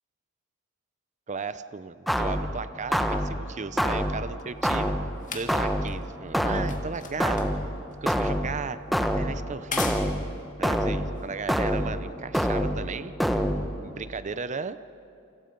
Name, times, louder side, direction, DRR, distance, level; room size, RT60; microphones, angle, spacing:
voice 1, 1.3-5.0 5.3-7.5 8.0-8.8 9.2-10.1 10.6-13.1 13.8-14.8, right 4 dB, 35° right, 13 dB, 0.6 m, -35 dB
sound 1, 2.1-14.0, equal, ahead, 1.1 m, -28 dB
sound 2, 3.4-12.0 12.8-12.9, left 6 dB, 40° left, 2.1 m, -42 dB
29.0 x 25.5 x 5.3 m, 2.5 s
head